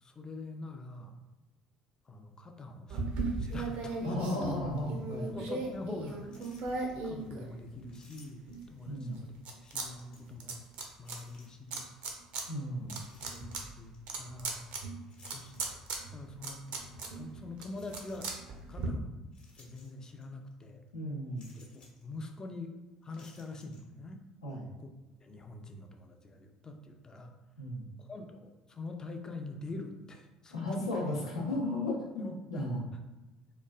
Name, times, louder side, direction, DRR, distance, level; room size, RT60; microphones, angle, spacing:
voice 1, 0.0-1.2 2.1-3.0 3.4-4.5 5.3-6.4 7.0-9.3 9.6-10.6 11.0-11.9 12.8-13.0 13.3-14.7 15.3-15.5 16.1-16.6 17.2-18.3 18.7-19.1 19.6-20.8 21.7-24.3 24.8-24.9 25.2-27.3 28.0-30.9 32.2-32.7, left 2 dB, 25° left, 4 dB, 0.4 m, -44 dB
sound 1, 2.9-8.0 8.5-9.9 10.1-11.2 11.7-12.4 12.8-18.9, right 3 dB, 55° right, 0.5 m, -38 dB
voice 2, 4.0-5.4 8.9-9.2 12.5-13.0 20.9-21.5 24.4-24.7 27.6-27.9 30.5-32.8, left 1 dB, 80° left, -4 dB, 0.6 m, -35 dB
sound 2, 6.3-6.9 7.9-8.8 9.6-10.4 11.0-11.8 12.9-14.0 15.1-16.1 16.7-16.8 17.7-18.6 19.3-20.3 20.5-20.6 21.3-22.1 23.0-23.8, left 3 dB, 40° left, 0.9 m, -60 dB
3.0 x 2.3 x 2.3 m, 1.1 s
figure-of-eight pair, 55°, 3 cm